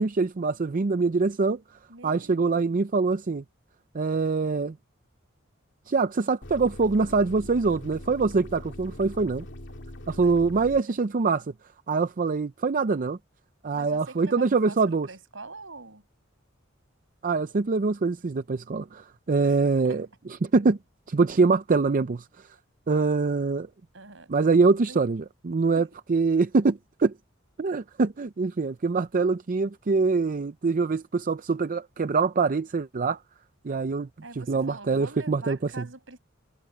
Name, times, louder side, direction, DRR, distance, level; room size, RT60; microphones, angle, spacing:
voice 1, 0.0-1.6 2.0-3.4 3.9-4.7 5.9-9.4 10.1-11.4 11.9-13.2 13.6-15.1 17.2-20.1 20.4-20.8 21.1-22.2 22.9-23.7 24.3-27.1 27.6-33.2 33.6-34.1 34.5-35.8, right 4 dB, 45° right, 0.5 m, -24 dB
voice 2, 1.9-2.7 10.2-10.5 10.9-11.0 13.7-16.0 19.4-20.0 23.9-24.3 24.7-25.0 25.7-25.9 34.2-36.2, right 3 dB, 70° right, 7.7 m, -45 dB
sound 1, 6.4-10.8, left 1 dB, 65° left, 2.6 m, -42 dB
head